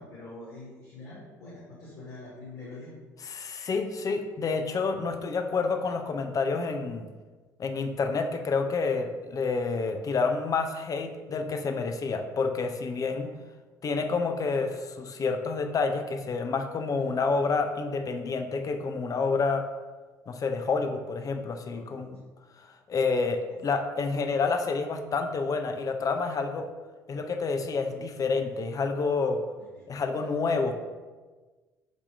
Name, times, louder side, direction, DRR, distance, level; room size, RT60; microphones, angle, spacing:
voice 1, 0.0-2.9 17.0-17.1 21.7-22.1 23.5-23.6 29.6-30.0, left 2 dB, 75° left, -10 dB, 1.3 m, -45 dB
voice 2, 3.3-7.1 7.6-13.3 13.8-19.6 20.3-22.2 22.6-26.7 27.1-29.4 29.9-30.7, left 4 dB, 40° left, 6 dB, 0.5 m, -29 dB
4.2 x 2.9 x 4.4 m, 1.3 s
hypercardioid pair, 55°, 9 cm